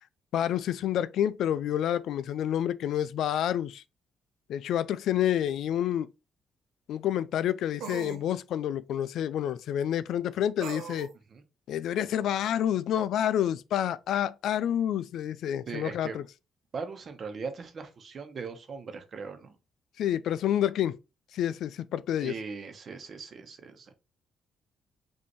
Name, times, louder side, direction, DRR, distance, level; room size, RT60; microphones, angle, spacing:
voice 1, 0.3-3.8 4.5-6.1 6.9-11.1 11.7-16.2 20.0-21.0 21.3-22.3, left 10 dB, 75° left, 0.3 m, -28 dB
sound 1, 5.5-5.6 7.8-8.2 10.6-11.1, right 6 dB, 80° right, 0.6 m, -39 dB
voice 2, 15.7-16.2 16.7-19.6 22.2-23.9, right 5 dB, 50° right, 1.0 m, -39 dB
5.3 x 2.7 x 3.0 m
cardioid pair, 90°, 0 cm